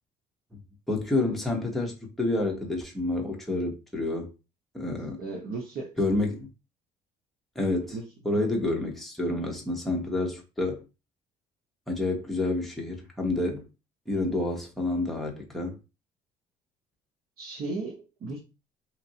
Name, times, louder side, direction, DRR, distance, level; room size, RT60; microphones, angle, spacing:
voice 1, 0.9-4.3 4.7-5.2 6.0-6.5 7.5-8.0 8.2-10.8 11.9-13.7 14.1-15.8, left 2 dB, ahead, 0.9 m, -29 dB
voice 2, 5.2-6.0 7.9-8.0 8.4-8.5 17.4-18.4, right 3 dB, 60° right, 0.9 m, -35 dB
3.1 x 2.5 x 2.8 m
cardioid pair, 110°, 17 cm